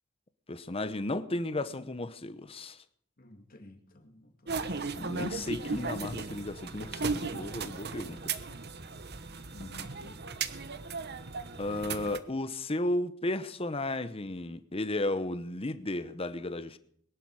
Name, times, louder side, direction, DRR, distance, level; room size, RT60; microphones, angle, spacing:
voice 1, 0.5-2.8 4.9-8.3 11.6-16.8, left 2 dB, 30° left, 0.9 m, -34 dB
voice 2, 3.2-5.1 9.5-10.2, left 2 dB, 45° left, 2.4 m, -52 dB
sound 1, 4.5-12.2, right 4 dB, 55° right, 1.0 m, -36 dB
22.0 x 11.5 x 4.9 m
head